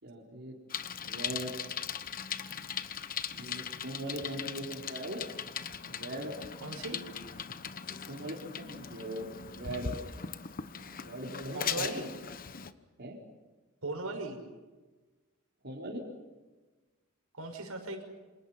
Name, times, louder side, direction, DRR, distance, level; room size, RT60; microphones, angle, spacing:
voice 1, 0.0-0.6 1.0-1.6 3.3-5.2 5.9-6.4 8.1-9.9 11.0-12.0 13.0-13.2 15.6-16.0, right 1 dB, 50° right, -2 dB, 4.1 m, -40 dB
Bicycle, 0.7-12.7, left 7 dB, 40° left, 1.0 m, -39 dB
voice 2, 6.6-7.0 11.5-12.1 13.8-14.4 17.3-18.0, right 2 dB, 80° right, 3 dB, 5.9 m, -37 dB
28.0 x 27.0 x 5.8 m, 1.3 s
head